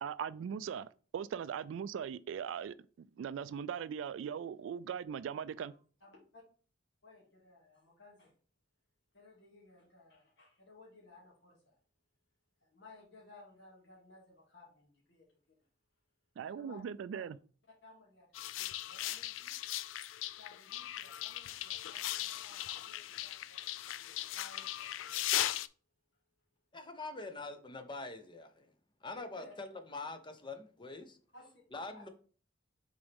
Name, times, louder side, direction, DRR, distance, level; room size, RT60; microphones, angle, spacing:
voice 1, 0.0-5.7 16.4-17.4, right 7 dB, 75° right, 0.3 m, -40 dB
voice 2, 5.7-6.4 7.0-8.3 9.1-11.8 12.6-15.7 16.4-17.3 17.8-19.5 20.3-23.6 24.0-25.5 29.1-29.5 31.3-31.6 31.9-32.1, left 3 dB, 65° left, 2.2 m, -59 dB
sound 1, 18.3-25.7, left 13 dB, 85° left, 0.3 m, -38 dB
voice 3, 26.7-28.7 29.0-31.2 31.7-32.1, left 3 dB, 25° left, 0.7 m, -44 dB
6.9 x 4.1 x 3.5 m
head